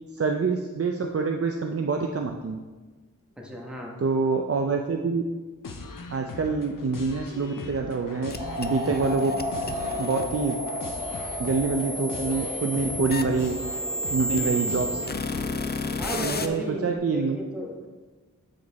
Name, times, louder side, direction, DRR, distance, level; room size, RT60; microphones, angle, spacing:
voice 1, 0.1-2.6 4.0-5.2 6.1-8.3 8.6-9.3 10.0-10.5 11.4-13.5 14.1-14.9 16.1-17.4, right 4 dB, 45° right, 3 dB, 0.5 m, -26 dB
voice 2, 3.4-3.9 14.4-14.8 16.0-17.9, equal, 5° right, -1 dB, 1.1 m, -35 dB
sound 1, 5.6-16.0, left 3 dB, 75° left, 0.7 m, -40 dB
sound 2, 8.3-16.5, left 1 dB, 30° left, 0.4 m, -33 dB
sound 3, 8.4-16.9, left 1 dB, 25° right, 0.9 m, -35 dB
7.9 x 5.1 x 4.1 m, 1.3 s
wide cardioid pair, 80°, 33 cm